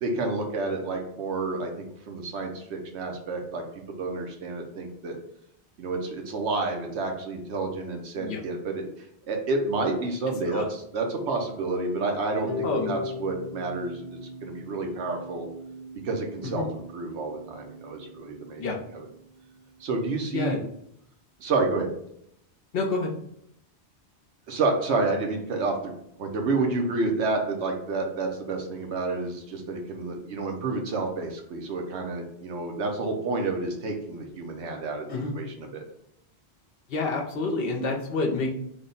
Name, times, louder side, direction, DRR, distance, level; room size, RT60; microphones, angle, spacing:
voice 1, 0.0-5.2 5.8-8.9 9.3-15.5 16.0-18.7 19.8-20.6 21.4-21.9 24.5-25.9 26.2-35.8, right 3 dB, 80° right, 3 dB, 1.0 m, -29 dB
Harp, 12.5-18.5, left 3 dB, ahead, 0.8 m, -39 dB
voice 2, 22.7-23.1 35.1-35.3 36.9-38.5, left 3 dB, 65° left, 1 dB, 0.9 m, -28 dB
3.5 x 2.2 x 3.8 m, 0.72 s
omnidirectional pair, 1.1 m